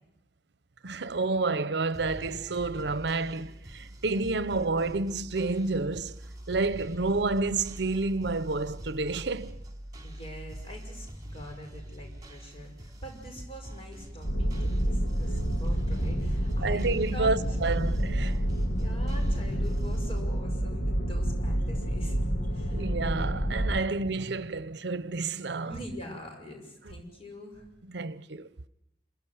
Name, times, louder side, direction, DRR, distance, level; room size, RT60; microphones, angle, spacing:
voice 1, 0.8-6.2 6.5-9.6 16.6-18.4 22.7-25.7 27.9-28.5, right 3 dB, 70° right, 0.8 m, -29 dB
sound 1, 1.9-20.2, equal, 20° right, 3.6 m, -43 dB
voice 2, 10.0-16.8 17.1-17.4 18.8-22.2 22.5-22.9 25.6-27.7, equal, 35° left, 5.8 m, -43 dB
sound 2, 14.2-23.8, equal, 70° left, 2.3 m, -28 dB
27.5 x 16.0 x 9.5 m
head